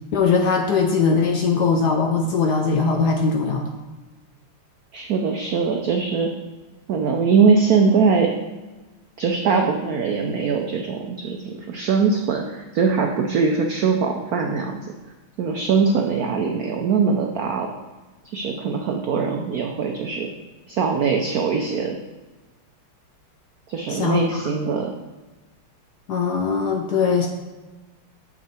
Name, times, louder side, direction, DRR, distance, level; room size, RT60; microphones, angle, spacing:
voice 1, 0.1-3.7 23.9-24.4 26.1-27.3, left 5 dB, 70° left, 3 dB, 1.0 m, -20 dB
voice 2, 4.9-6.3 6.9-8.3 9.2-14.9 15.4-17.7 18.2-20.3 20.7-22.0 23.7-24.9, right 5 dB, 80° right, 3 dB, 0.8 m, -21 dB
6.7 x 6.1 x 4.2 m, 1.2 s
omnidirectional pair, 2.3 m